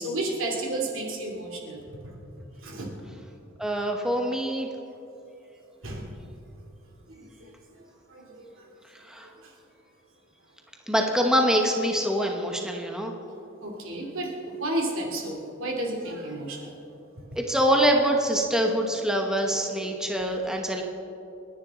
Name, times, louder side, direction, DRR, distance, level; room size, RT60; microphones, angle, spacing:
voice 1, 0.0-1.8 2.6-2.9 5.8-6.1 7.1-7.5 8.1-8.7 9.2-9.5 13.6-14.3 14.6-16.7 17.3-17.4 19.5-20.0 20.4-20.5, right 1 dB, 70° right, 0 dB, 2.6 m, -32 dB
voice 2, 3.6-4.7 9.1-9.3 10.9-13.1 17.4-20.8, equal, 5° right, 1 dB, 1.0 m, -24 dB
29.5 x 10.0 x 3.7 m, 2.9 s
head